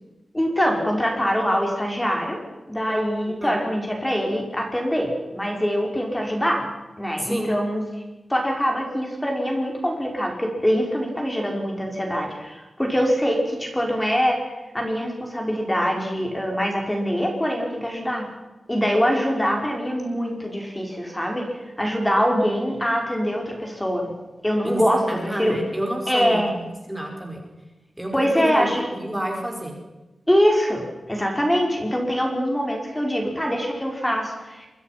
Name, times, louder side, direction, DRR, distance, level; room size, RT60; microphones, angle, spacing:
voice 1, 0.3-2.4 2.7-6.7 7.0-7.8 8.3-14.4 14.7-18.3 18.7-24.1 24.4-25.6 26.1-26.5 28.1-29.1 30.3-34.7, equal, 10° left, 1 dB, 5.3 m, -23 dB
voice 2, 7.2-7.5 19.4-19.6 24.6-27.4 28.0-29.7, right 1 dB, 5° right, 1 dB, 5.0 m, -29 dB
27.5 x 23.5 x 6.0 m, 1.1 s
wide cardioid pair, 140°, 0 cm